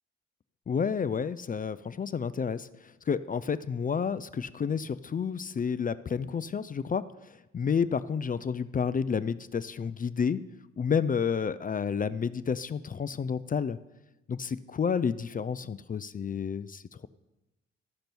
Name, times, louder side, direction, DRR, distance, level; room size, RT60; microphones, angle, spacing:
voice 1, 0.7-7.0 7.3-10.4 10.8-13.8 14.3-17.1, left 6 dB, 25° left, 15 dB, 0.4 m, -30 dB
12.0 x 5.2 x 6.0 m, 1.0 s
hypercardioid pair, 45°, 32 cm